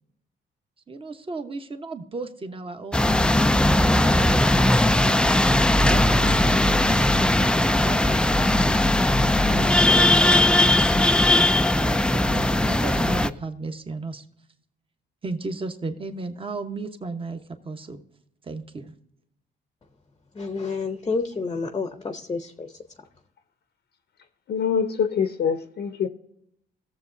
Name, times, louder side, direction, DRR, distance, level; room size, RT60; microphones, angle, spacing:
voice 1, 0.9-3.3 3.8-5.5 5.9-8.9 9.5-14.2 15.2-18.0 18.4-18.9, right 3 dB, 25° right, 7 dB, 1.1 m, -35 dB
sound 1, 2.9-13.3, left 1 dB, 5° left, 0.3 m, -19 dB
voice 2, 20.4-22.7, left 4 dB, 25° left, 6 dB, 0.7 m, -29 dB
voice 3, 24.5-26.1, left 7 dB, 60° left, 8 dB, 0.7 m, -24 dB
17.5 x 7.2 x 2.6 m, 0.78 s
cardioid pair, 90°, 20 cm